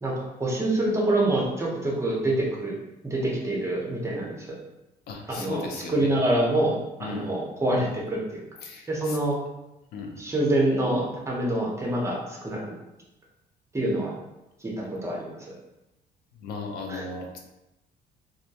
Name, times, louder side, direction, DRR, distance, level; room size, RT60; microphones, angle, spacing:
voice 1, 0.0-2.8 3.0-4.5 5.3-8.4 8.9-9.4 10.2-12.8 13.7-14.1 14.6-15.4 16.9-17.0, right 1 dB, 15° right, -3 dB, 0.6 m, -26 dB
voice 2, 5.1-6.1 7.0-7.3 8.6-9.2 9.9-10.2 16.3-17.4, left 3 dB, 70° left, 1 dB, 0.4 m, -36 dB
2.2 x 2.1 x 2.8 m, 0.95 s
cardioid pair, 110°, 17 cm